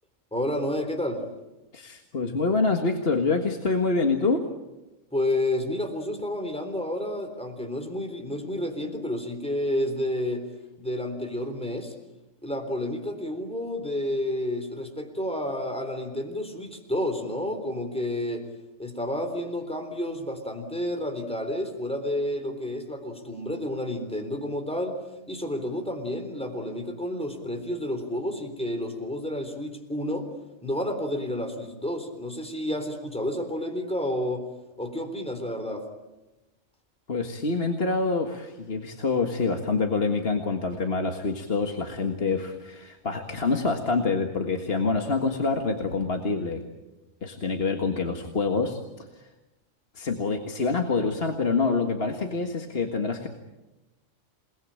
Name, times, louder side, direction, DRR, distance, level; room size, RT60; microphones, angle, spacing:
voice 1, 0.3-1.2 5.1-10.5 10.8-11.9 12.4-18.4 18.8-25.0 25.3-30.3 30.6-34.5 34.8-35.9, left 1 dB, 5° left, 5 dB, 3.7 m, -30 dB
voice 2, 1.7-4.5 37.1-46.7 47.2-48.8 50.0-53.3, left 4 dB, 50° left, 3 dB, 1.9 m, -26 dB
28.5 x 20.0 x 9.0 m, 1.0 s
omnidirectional pair, 1.4 m